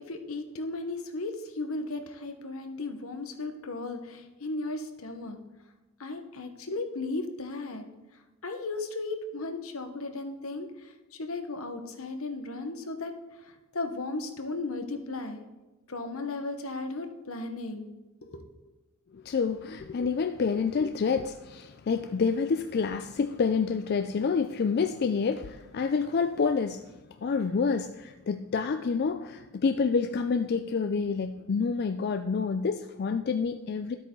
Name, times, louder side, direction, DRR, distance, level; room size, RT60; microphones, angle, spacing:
voice 1, 0.0-5.4 6.0-7.8 8.4-13.1 13.4-15.4 15.9-17.9 18.2-18.4, left 2 dB, 70° left, 1.1 m, -35 dB
voice 2, 19.1-26.9 27.2-34.0, left 5 dB, 45° left, 0.3 m, -28 dB
12.5 x 8.3 x 3.8 m
head